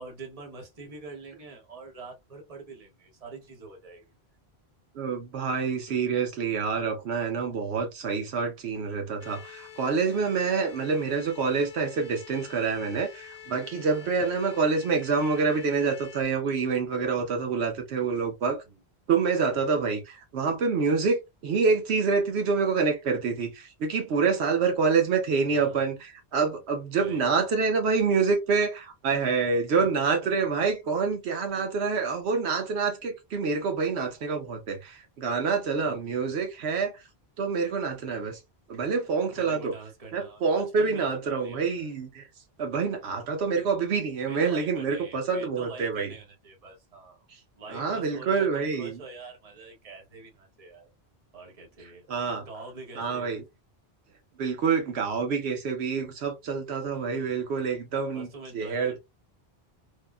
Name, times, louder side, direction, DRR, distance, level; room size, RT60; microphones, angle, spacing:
voice 1, 0.0-4.1 5.9-6.1 14.2-14.3 18.2-18.3 18.7-18.8 25.5-25.9 26.9-27.2 35.8-36.7 39.3-41.9 44.3-47.2 47.6-50.9 51.3-52.1 52.4-53.3 58.1-59.0, right 3 dB, 35° right, 1.0 m, -45 dB
voice 2, 4.9-18.6 19.1-37.1 37.4-38.4 38.7-39.7 40.1-42.3 42.6-46.1 47.7-49.0 52.1-52.5 53.0-53.4 54.4-58.3 58.5-59.0, right 5 dB, 85° right, 1.0 m, -27 dB
sound 1, 9.2-16.2, left 9 dB, 55° left, 0.7 m, -47 dB
3.4 x 2.1 x 2.3 m
omnidirectional pair, 1.1 m